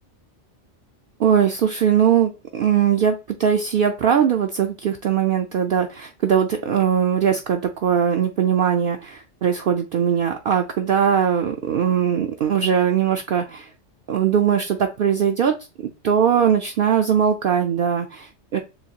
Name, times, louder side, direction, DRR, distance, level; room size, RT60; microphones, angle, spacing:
voice 1, 1.2-13.7 14.1-18.6, right 8 dB, 60° right, 4 dB, 0.6 m, -20 dB
6.9 x 2.3 x 2.8 m, 0.29 s
omnidirectional pair, 1.2 m